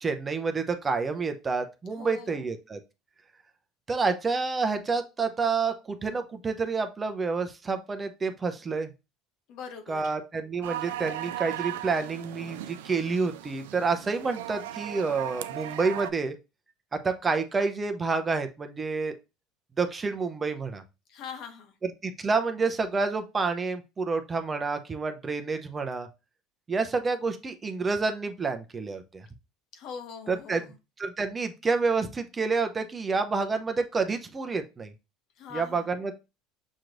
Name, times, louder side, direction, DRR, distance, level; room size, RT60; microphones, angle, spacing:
voice 1, 0.0-2.8 3.9-8.9 9.9-16.4 16.9-19.2 19.8-20.8 21.8-26.1 26.7-29.3 30.3-30.6 31.0-34.9 35.5-36.1, right 4 dB, 25° right, 7 dB, 0.7 m, -29 dB
voice 2, 1.9-2.5 9.5-10.1 21.1-21.7 29.7-30.7 35.4-35.9, left 6 dB, 60° left, 5 dB, 1.2 m, -42 dB
sound 1, 10.6-16.1, right 13 dB, 85° right, 0.3 m, -37 dB
6.2 x 3.0 x 2.6 m, 0.26 s
supercardioid pair, 90°, 0 cm